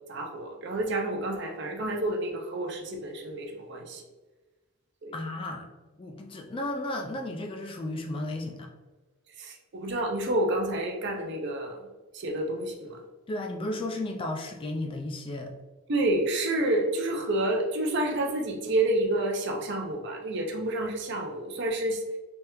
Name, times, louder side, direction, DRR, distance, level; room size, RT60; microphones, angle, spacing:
voice 1, 0.1-4.0 5.0-5.2 9.4-11.8 12.1-13.0 15.9-22.0, right 1 dB, 55° right, 2 dB, 0.6 m, -29 dB
voice 2, 5.1-5.7 6.0-8.7 13.3-15.5, left 1 dB, 25° left, 2 dB, 0.3 m, -34 dB
3.5 x 3.3 x 3.0 m, 1.2 s
head